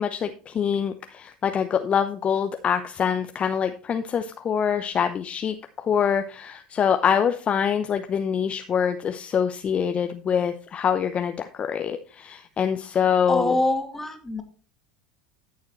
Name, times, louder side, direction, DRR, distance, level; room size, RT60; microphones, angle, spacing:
voice 1, 0.0-13.6, left 7 dB, 30° left, 7 dB, 0.8 m, -25 dB
voice 2, 13.3-14.4, left 2 dB, 10° left, 5 dB, 2.2 m, -25 dB
13.5 x 7.2 x 3.1 m, 0.37 s
hypercardioid pair, 80°, 4 cm